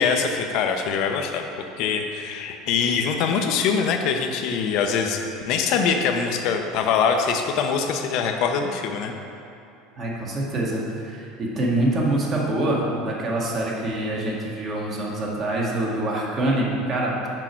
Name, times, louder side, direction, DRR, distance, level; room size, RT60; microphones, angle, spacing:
voice 1, 0.0-1.4 1.8-9.1, left 6 dB, 60° left, 4 dB, 0.6 m, -23 dB
voice 2, 10.0-17.3, right 1 dB, 40° right, -3 dB, 1.5 m, -25 dB
6.1 x 4.9 x 4.4 m, 2.7 s
supercardioid pair, 110°, 0 cm